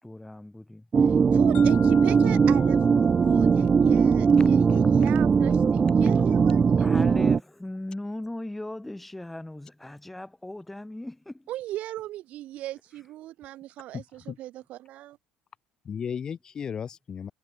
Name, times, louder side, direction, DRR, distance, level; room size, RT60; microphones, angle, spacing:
voice 1, 0.0-0.9 6.8-11.5, left 1 dB, 5° left, 2.7 m, -38 dB
sound 1, 0.9-7.4, right 5 dB, 20° right, 0.6 m, -20 dB
voice 2, 1.3-6.9 11.5-15.2, right 14 dB, 45° right, 3.4 m, -38 dB
sound 2, 1.5-5.5, left 15 dB, 45° left, 4.4 m, -46 dB
voice 3, 4.4-4.8 13.9-14.4 15.8-17.3, left 7 dB, 25° left, 1.2 m, -36 dB
cardioid pair, 180°, 3 cm